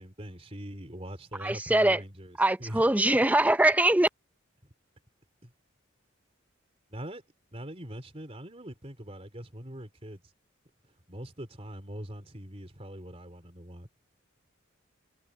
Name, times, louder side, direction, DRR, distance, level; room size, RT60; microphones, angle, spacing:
voice 1, 0.0-2.9 5.4-5.5 6.9-7.2 7.5-10.2 11.1-13.9, right 1 dB, 30° right, 3.7 m, -42 dB
voice 2, 1.4-2.0 2.4-4.1, right 1 dB, 5° right, 0.5 m, -22 dB
head